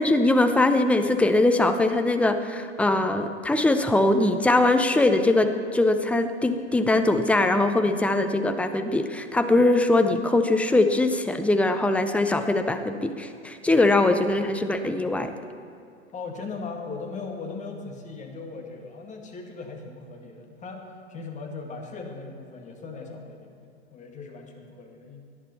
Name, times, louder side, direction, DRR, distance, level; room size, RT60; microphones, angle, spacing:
voice 1, 0.0-15.3, left 2 dB, 5° left, 7 dB, 0.7 m, -22 dB
voice 2, 16.1-25.2, left 4 dB, 20° left, 2 dB, 1.9 m, -38 dB
18.0 x 11.0 x 4.2 m, 2.6 s
figure-of-eight pair, 95°, 34 cm